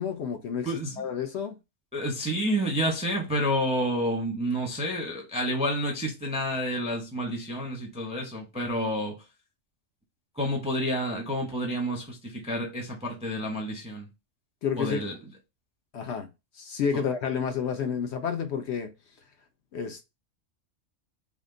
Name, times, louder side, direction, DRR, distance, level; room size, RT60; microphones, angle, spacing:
voice 1, 0.0-0.7 1.0-1.6 14.6-15.0 15.9-16.3 16.6-18.9 19.7-20.0, left 7 dB, 65° left, 0.8 m, -30 dB
voice 2, 0.6-1.1 1.9-9.2 10.4-14.1 14.8-15.1 16.9-17.0, equal, 5° right, 0.6 m, -29 dB
3.6 x 2.5 x 3.7 m
omnidirectional pair, 1.4 m